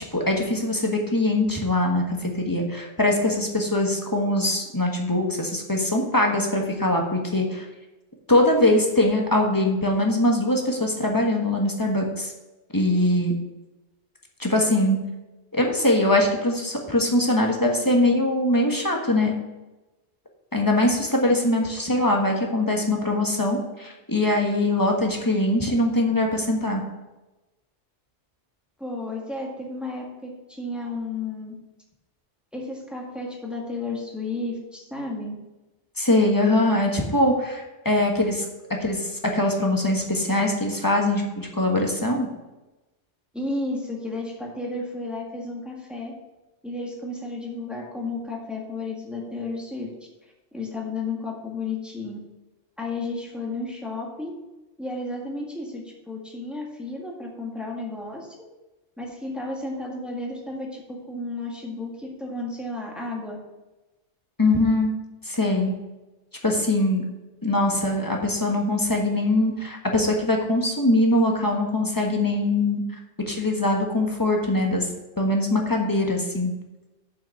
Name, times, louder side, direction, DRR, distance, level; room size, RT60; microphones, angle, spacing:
voice 1, 0.1-7.7 8.3-12.3 12.7-13.3 14.4-15.0 15.5-19.3 20.5-26.8 36.0-38.4 38.8-42.3 64.4-64.9 65.2-65.7 66.4-67.0 67.4-72.8 73.3-74.9 75.2-76.5, left 1 dB, 15° left, 1 dB, 1.4 m, -22 dB
voice 2, 28.8-31.5 32.5-35.3 43.3-46.1 46.6-49.9 50.5-52.2 52.8-54.3 54.8-58.3 59.0-63.4, left 2 dB, ahead, -2 dB, 1.7 m, -32 dB
6.9 x 6.0 x 6.6 m, 1.1 s
omnidirectional pair, 1.2 m